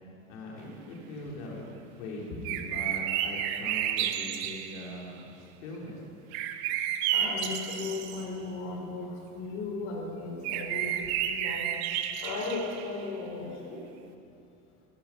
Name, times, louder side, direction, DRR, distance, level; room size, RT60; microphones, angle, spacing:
voice 1, 0.3-6.0, left 1 dB, 90° left, -2 dB, 3.4 m, -41 dB
sound 1, 2.4-5.0 6.3-8.2 10.4-13.0, right 10 dB, 70° right, 1.0 m, -31 dB
voice 2, 7.1-11.8 12.2-13.8, left 3 dB, 50° left, 0 dB, 3.8 m, -36 dB
15.5 x 12.0 x 5.7 m, 2.7 s
supercardioid pair, 135°, 33 cm